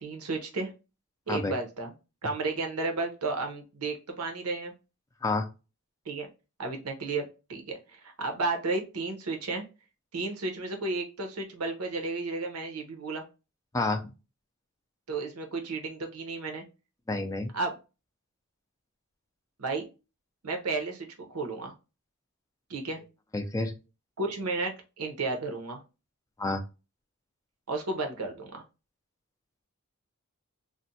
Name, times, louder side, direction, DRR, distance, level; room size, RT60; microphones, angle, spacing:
voice 1, 0.0-0.7 1.3-1.9 2.2-4.7 6.1-6.3 6.6-9.6 10.1-13.2 15.1-16.6 17.5-17.7 19.6-19.8 20.4-21.7 22.7-23.0 24.2-25.8 27.7-28.6, right 3 dB, 90° right, 4 dB, 0.8 m, -33 dB
voice 2, 13.7-14.1 17.1-17.5 23.3-23.7 26.4-26.6, left 2 dB, 15° left, 5 dB, 0.3 m, -29 dB
2.5 x 2.1 x 3.9 m, 0.29 s
head